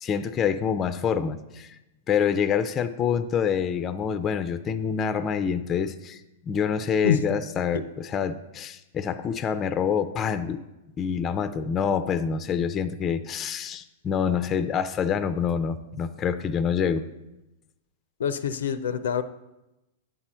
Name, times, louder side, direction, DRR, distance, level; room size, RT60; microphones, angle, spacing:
voice 1, 0.0-1.8 2.1-7.8 8.1-10.7 11.0-17.1, left 7 dB, 25° left, 12 dB, 0.4 m, -26 dB
voice 2, 7.0-7.4 18.2-19.2, left 7 dB, 80° left, 13 dB, 0.5 m, -26 dB
9.3 x 4.3 x 6.1 m, 0.97 s
hypercardioid pair, 125°, 0 cm